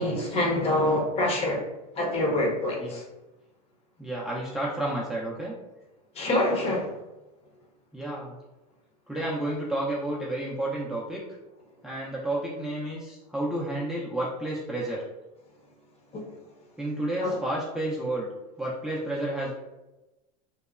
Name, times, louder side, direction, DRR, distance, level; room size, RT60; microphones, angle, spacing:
voice 1, 0.0-1.6 2.0-3.0 6.2-6.9 16.1-16.2 17.2-17.4, left 1 dB, 30° left, -1 dB, 0.7 m, -25 dB
voice 2, 4.0-5.5 7.9-8.4 9.1-11.2 11.8-15.0 16.8-18.3 18.6-19.5, right 1 dB, 5° right, -5 dB, 0.4 m, -31 dB
3.0 x 2.0 x 2.3 m, 1.0 s
supercardioid pair, 115°, 20 cm